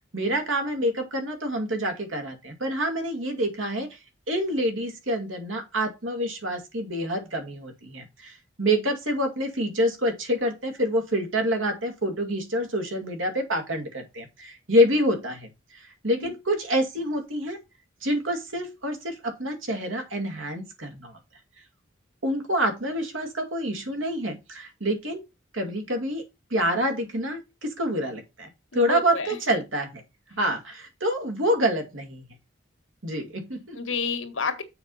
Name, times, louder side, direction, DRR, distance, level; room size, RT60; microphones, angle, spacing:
voice 1, 0.1-4.0 4.3-15.5 15.8-17.6 18.0-21.1 22.2-25.2 25.5-26.2 26.5-30.0 30.3-32.2 33.0-33.8, equal, 80° right, 2.4 m, -27 dB
voice 2, 28.7-29.4 33.5-34.6, left 4 dB, 75° left, 1.6 m, -30 dB
7.1 x 4.9 x 5.5 m
head